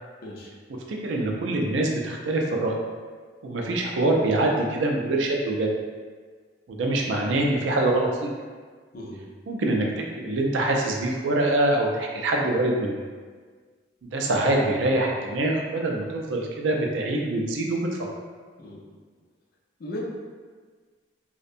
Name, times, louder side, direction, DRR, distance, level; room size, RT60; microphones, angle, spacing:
voice 1, 0.2-0.5 8.9-9.2 18.6-18.8 19.8-20.0, left 1 dB, 50° left, -3 dB, 0.4 m, -37 dB
voice 2, 0.9-2.7 3.4-5.7 6.7-8.3 9.5-13.0 14.0-17.9, right 2 dB, 75° right, 0 dB, 0.4 m, -24 dB
2.6 x 2.1 x 2.5 m, 1.5 s
head